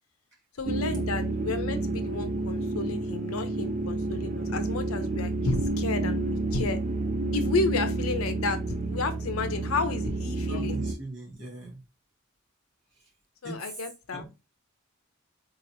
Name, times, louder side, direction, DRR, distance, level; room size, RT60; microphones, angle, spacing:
voice 1, 0.6-6.8 7.3-10.8 13.4-14.2, left 3 dB, 80° left, 0.6 m, -32 dB
sound 1, 0.6-10.9, right 2 dB, 35° right, 0.4 m, -30 dB
voice 2, 10.5-11.8 13.0-13.1 13.4-13.8 14.1-14.3, right 1 dB, 55° right, 2.0 m, -40 dB
3.9 x 2.9 x 2.6 m
head